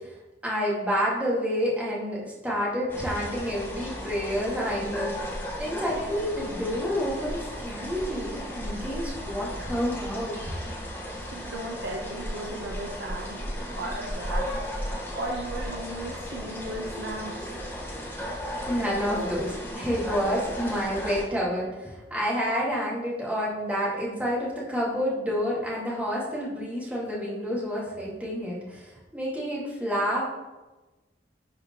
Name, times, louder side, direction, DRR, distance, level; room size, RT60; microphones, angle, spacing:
voice 1, 0.4-10.5 18.6-30.3, equal, 10° right, -6 dB, 2.0 m, -29 dB
sound 1, 2.9-21.2, equal, 10° left, 1.5 m, -35 dB
voice 2, 11.3-17.3, right 1 dB, 75° right, -1 dB, 1.0 m, -36 dB
10.0 x 4.9 x 3.1 m, 1.1 s
head